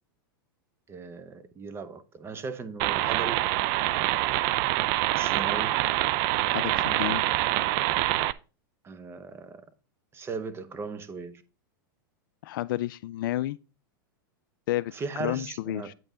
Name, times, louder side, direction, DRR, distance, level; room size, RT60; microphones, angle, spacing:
voice 1, 0.9-3.5 5.1-5.8 8.8-9.6 10.1-11.4 14.9-15.9, right 4 dB, 20° right, 0.8 m, -37 dB
sound 1, 2.8-8.3, right 16 dB, 50° right, 0.4 m, -25 dB
voice 2, 6.5-7.2 12.4-13.6 14.7-14.9 15.2-15.9, left 15 dB, 65° left, 0.4 m, -30 dB
9.0 x 5.4 x 3.7 m
hypercardioid pair, 120°, 12 cm